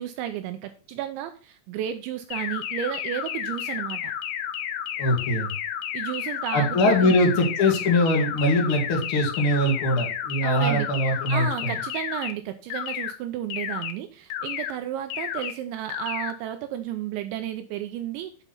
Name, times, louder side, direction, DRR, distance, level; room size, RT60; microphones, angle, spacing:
voice 1, 0.0-4.1 5.9-7.5 10.4-10.9 11.3-18.4, right 11 dB, 85° right, 8 dB, 2.7 m, -33 dB
sound 1, 2.3-12.3 12.7-13.1 13.5-13.9 14.3-14.7 15.1-15.5 15.9-16.3, left 10 dB, 80° left, 2.6 m, -31 dB
voice 2, 5.0-5.5 6.5-11.7, left 1 dB, 45° left, 1 dB, 1.7 m, -22 dB
8.1 x 5.5 x 5.6 m, 0.37 s
omnidirectional pair, 5.8 m